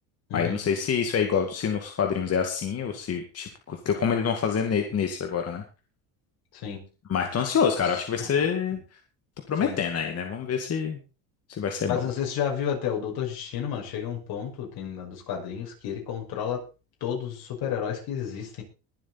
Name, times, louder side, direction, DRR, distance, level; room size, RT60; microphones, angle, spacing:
voice 1, 0.3-5.6 7.1-8.8 9.5-11.0 11.5-12.0, left 7 dB, 35° left, 4 dB, 2.2 m, -26 dB
voice 2, 6.5-6.9 7.8-8.3 9.6-9.8 11.9-16.6 17.0-18.6, left 8 dB, 65° left, 1 dB, 5.8 m, -31 dB
21.5 x 7.7 x 4.2 m, 0.33 s
cardioid pair, 115°, 40 cm